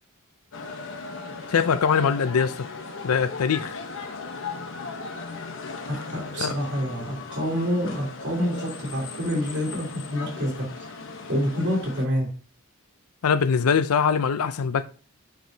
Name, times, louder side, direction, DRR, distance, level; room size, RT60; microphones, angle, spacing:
sound 1, 0.5-12.1, left 4 dB, 60° left, 1.0 m, -37 dB
voice 1, 1.5-2.7 3.0-3.8 6.3-6.5 13.2-14.9, left 6 dB, 85° left, 0.5 m, -22 dB
voice 2, 6.1-10.7 11.3-12.3, equal, 55° right, 3.5 m, -27 dB
9.1 x 4.7 x 2.8 m
head